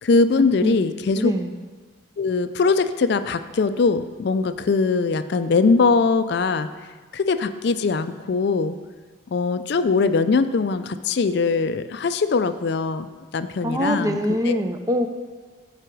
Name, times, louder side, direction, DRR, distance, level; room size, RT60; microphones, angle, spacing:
voice 1, 0.0-1.3 2.2-6.7 7.1-8.7 9.3-13.1 13.3-14.2 14.5-14.6, left 4 dB, 55° left, 11 dB, 0.4 m, -21 dB
voice 2, 1.2-1.5 13.6-15.1, equal, 15° right, 6 dB, 0.5 m, -23 dB
14.0 x 4.9 x 4.6 m, 1.5 s
head